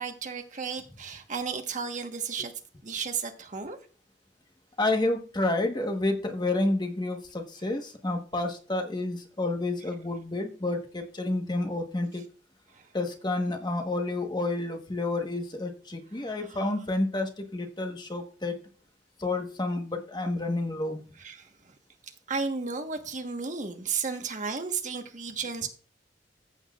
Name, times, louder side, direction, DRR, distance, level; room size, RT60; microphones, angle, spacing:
voice 1, 0.0-2.5 2.8-3.8 12.7-12.8 16.2-16.6 21.2-21.5 22.3-25.7, right 5 dB, 45° right, 1.3 m, -33 dB
voice 2, 4.8-12.2 12.9-18.6 19.2-21.0, left 2 dB, 25° left, 1.2 m, -30 dB
14.5 x 8.0 x 2.4 m
head